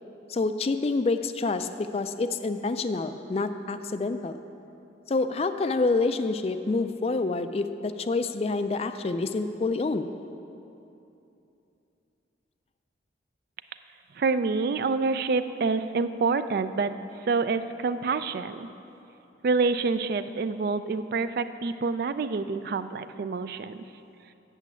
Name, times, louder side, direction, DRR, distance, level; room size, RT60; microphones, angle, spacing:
voice 1, 0.3-4.4 5.1-10.1, left 3 dB, 30° left, 10 dB, 0.3 m, -27 dB
voice 2, 14.2-16.9 17.3-18.7 19.4-23.8, right 4 dB, 50° right, 12 dB, 0.3 m, -27 dB
8.3 x 6.7 x 8.2 m, 2.8 s
head